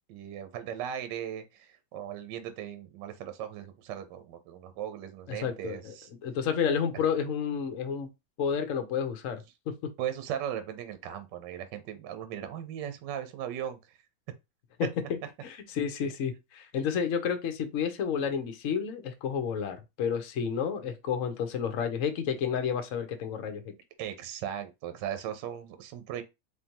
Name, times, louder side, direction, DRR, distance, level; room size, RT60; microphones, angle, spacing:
voice 1, 0.1-6.1 10.0-13.8 24.0-26.2, right 10 dB, 70° right, 1.2 m, -38 dB
voice 2, 5.3-5.9 6.2-8.1 8.4-9.4 9.7-9.9 15.1-23.6, left 7 dB, 55° left, 0.9 m, -31 dB
4.3 x 3.3 x 2.8 m
omnidirectional pair, 2.2 m